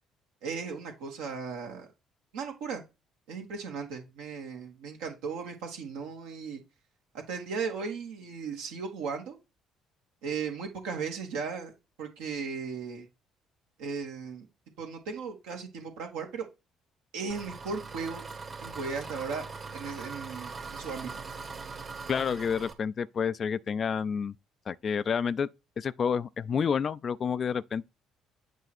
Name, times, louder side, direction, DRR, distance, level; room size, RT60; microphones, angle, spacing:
voice 1, 0.4-1.9 2.3-2.8 3.3-6.6 7.3-9.4 10.2-11.7 12.0-13.1 13.8-14.5 14.8-16.4 17.1-18.2 18.6-19.4 19.7-21.1, right 5 dB, 70° right, 1.7 m, -36 dB
Engine, 17.3-22.7, right 4 dB, 40° right, 1.5 m, -41 dB
voice 2, 22.1-24.3 24.7-25.5 25.8-27.8, left 6 dB, 45° left, 0.4 m, -29 dB
8.2 x 3.2 x 4.3 m
figure-of-eight pair, 50°, 0 cm